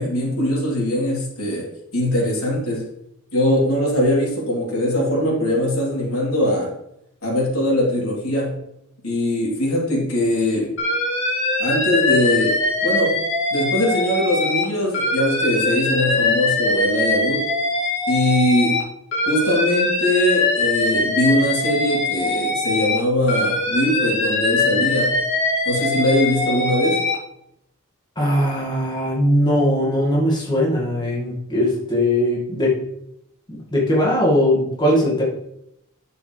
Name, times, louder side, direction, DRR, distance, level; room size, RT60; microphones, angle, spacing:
voice 1, 0.0-1.7 1.9-2.9 3.3-6.7 7.2-8.6 9.0-10.7 11.6-12.6 12.8-13.1 13.5-17.4 18.1-18.8 19.2-25.2 25.6-27.0, left 1 dB, 85° left, -4 dB, 3.5 m, -21 dB
Alarm, 10.8-14.6 14.9-18.8 19.1-23.0 23.3-27.2, left 2 dB, 60° left, 2.4 m, -22 dB
voice 2, 28.2-32.7 33.5-35.2, left 1 dB, 20° left, -4 dB, 2.0 m, -20 dB
9.6 x 7.0 x 3.3 m, 0.79 s
head